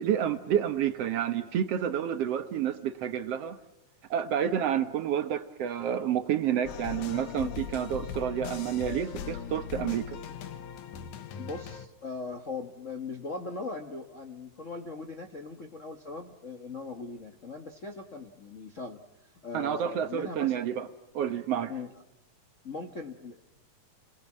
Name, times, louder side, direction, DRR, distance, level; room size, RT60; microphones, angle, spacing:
voice 1, 0.0-3.6 4.1-10.2 19.5-20.9 21.1-21.7, right 9 dB, 65° right, 1.8 m, -29 dB
sound 1, 6.6-11.9, left 8 dB, 80° left, 2.7 m, -39 dB
voice 2, 11.4-20.6 21.7-21.9 22.6-23.4, left 4 dB, 40° left, 1.0 m, -40 dB
29.5 x 20.5 x 7.4 m
omnidirectional pair, 3.5 m